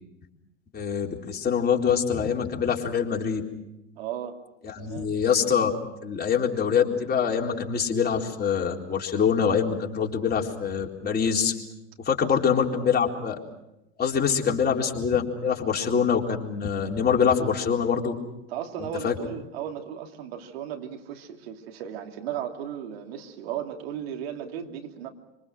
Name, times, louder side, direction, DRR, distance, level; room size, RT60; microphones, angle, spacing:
voice 1, 0.7-3.4 4.6-5.7 6.0-11.5 12.1-13.4 14.0-18.1 18.8-19.1, left 7 dB, 30° left, 0 dB, 4.0 m, -24 dB
voice 2, 4.0-4.4 4.8-5.1 12.2-12.3 12.7-12.9 18.5-25.1, right 9 dB, 70° right, 3 dB, 3.0 m, -36 dB
26.0 x 26.0 x 6.2 m, 0.90 s
hypercardioid pair, 80°, 32 cm